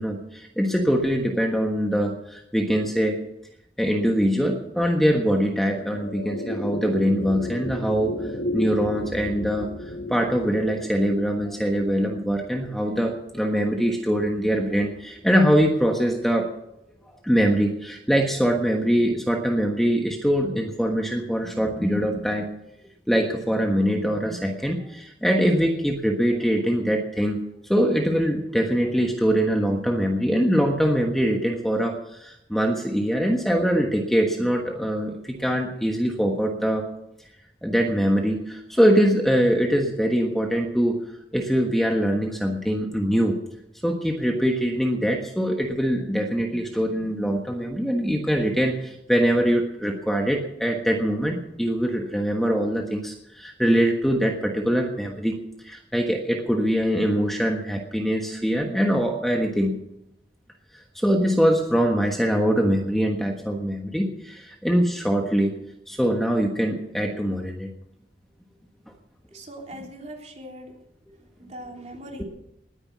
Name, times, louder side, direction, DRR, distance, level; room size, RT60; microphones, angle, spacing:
voice 1, 0.0-3.2 3.8-16.5 17.1-22.5 23.1-36.8 37.6-41.0 41.3-43.4 43.8-59.7 60.7-65.5 65.9-67.7, equal, ahead, 1 dB, 1.4 m, -23 dB
sound 1, 5.4-15.9, left 1 dB, 80° left, 2.2 m, -35 dB
voice 2, 69.3-70.8 71.1-72.2, equal, 40° right, 0 dB, 3.5 m, -41 dB
20.0 x 9.9 x 6.2 m, 0.85 s
head